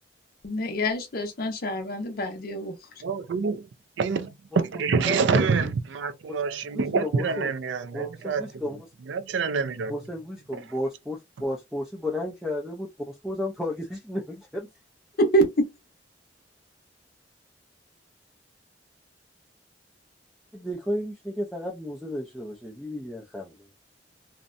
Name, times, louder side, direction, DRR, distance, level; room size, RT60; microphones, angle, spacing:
voice 1, 0.4-2.8 15.2-15.7, right 1 dB, 55° left, 0.6 m, -25 dB
voice 2, 3.0-3.7 4.0-8.7 9.1-9.9, right 5 dB, 75° right, 0.4 m, -26 dB
voice 3, 4.9-5.7 6.3-6.4 6.7-7.5 7.9-8.9 9.9-14.7 20.5-23.7, left 1 dB, ahead, 0.4 m, -33 dB
2.7 x 2.1 x 2.4 m
head